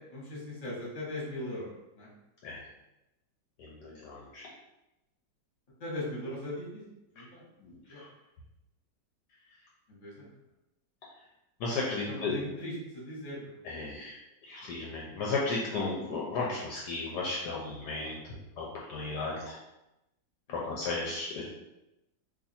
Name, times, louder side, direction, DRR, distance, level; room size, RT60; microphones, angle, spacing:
voice 1, 0.0-1.7 1.9-2.1 5.8-6.8 7.1-7.4 7.9-8.0 9.9-10.3 12.1-13.5 20.5-20.7, left 1 dB, 35° left, -5 dB, 1.1 m, -39 dB
voice 2, 3.6-4.5 7.6-8.1 11.6-12.4 13.6-14.2 14.4-19.6 20.5-21.4, left 3 dB, 75° left, -3 dB, 1.1 m, -35 dB
2.8 x 2.5 x 4.1 m, 0.93 s
omnidirectional pair, 2.0 m